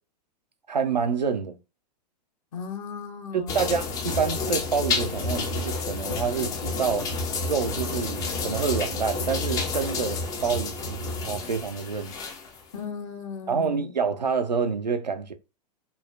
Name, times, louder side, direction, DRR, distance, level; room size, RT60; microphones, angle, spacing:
voice 1, 0.7-1.6 3.3-7.1 7.5-12.1 13.5-15.3, right 5 dB, 85° right, 0.4 m, -27 dB
voice 2, 2.5-3.7 12.7-13.9, left 6 dB, 55° left, 0.7 m, -36 dB
sound 1, 3.5-12.6, left 3 dB, 15° left, 0.3 m, -30 dB
3.1 x 2.0 x 2.2 m
figure-of-eight pair, 100°, 21 cm